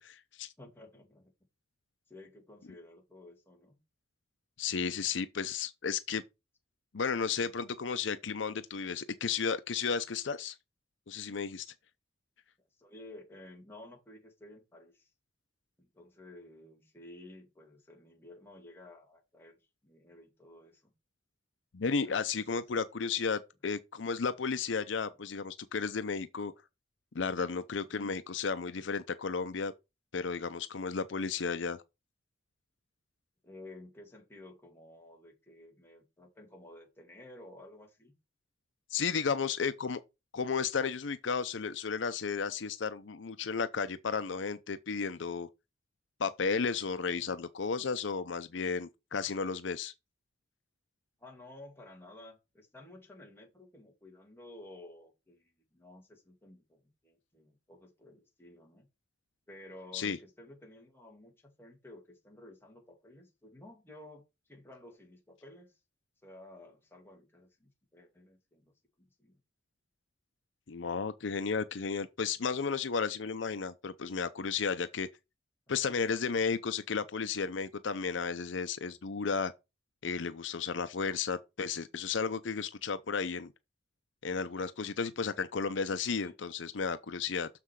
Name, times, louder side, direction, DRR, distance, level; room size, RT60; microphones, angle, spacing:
voice 1, 0.0-0.5 4.6-6.2 6.9-10.5 11.1-11.7 21.7-26.5 27.1-29.7 30.1-31.8 38.9-40.0 40.3-45.5 46.2-49.9 59.9-60.2 70.7-75.1 75.7-79.5 80.0-83.5 84.2-87.5, left 5 dB, 80° left, 0.6 m, -33 dB
voice 2, 0.6-1.2 2.1-3.8 12.8-15.1 15.8-19.6 19.8-20.9 21.8-22.2 25.1-25.2 27.9-28.2 33.4-38.1 47.0-47.4 51.2-58.9 59.5-65.7 66.2-68.7 69.2-69.4 81.0-81.2 86.2-86.3, left 1 dB, 15° left, 2.4 m, -53 dB
6.7 x 6.0 x 4.7 m
head